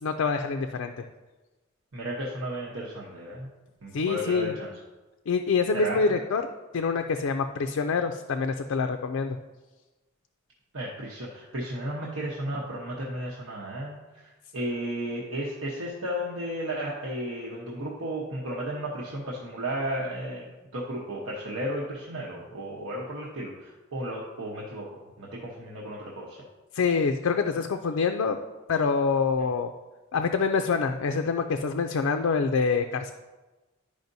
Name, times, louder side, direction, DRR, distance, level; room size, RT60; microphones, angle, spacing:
voice 1, 0.0-1.0 3.9-4.5 5.3-6.4 6.7-9.4 26.7-28.4 28.7-29.7 30.1-33.1, left 5 dB, 85° left, 5 dB, 0.4 m, -26 dB
voice 2, 1.9-3.5 3.8-4.7 5.7-6.0 10.7-26.4, right 1 dB, 85° right, -4 dB, 1.0 m, -34 dB
10.5 x 5.0 x 2.7 m, 1.2 s
head